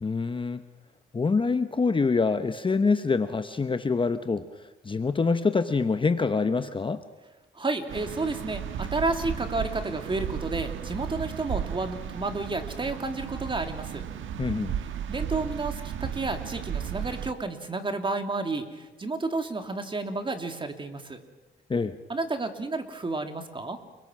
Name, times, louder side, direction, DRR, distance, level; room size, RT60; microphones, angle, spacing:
voice 1, 0.0-0.6 1.1-7.0 14.4-14.8 21.7-22.0, left 4 dB, 25° left, 10 dB, 1.0 m, -25 dB
voice 2, 7.5-14.0 15.1-21.2 22.1-23.8, right 3 dB, 25° right, 6 dB, 2.8 m, -31 dB
sound 1, 7.9-17.3, right 9 dB, 80° right, 1.4 m, -34 dB
29.5 x 22.5 x 6.3 m, 1.1 s
cardioid pair, 90°, 20 cm